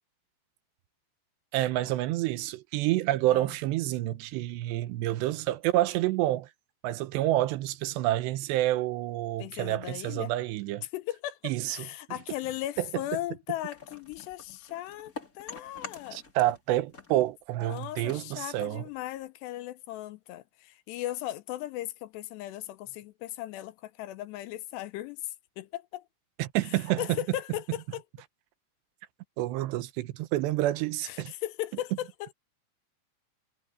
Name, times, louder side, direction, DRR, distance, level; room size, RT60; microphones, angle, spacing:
voice 1, 1.5-6.5 6.8-10.9 11.4-11.9 12.8-12.9 16.1-18.8 26.4-27.2 29.4-31.3, right 15 dB, 85° right, 3.0 m, -28 dB
voice 2, 9.4-10.3 10.9-16.2 17.6-26.1 27.0-28.0 31.0-32.3, left 14 dB, 85° left, 2.8 m, -37 dB
sound 1, 13.7-16.6 16.9-19.3, left 4 dB, 25° left, 2.8 m, -47 dB
omnidirectional pair, 5.0 m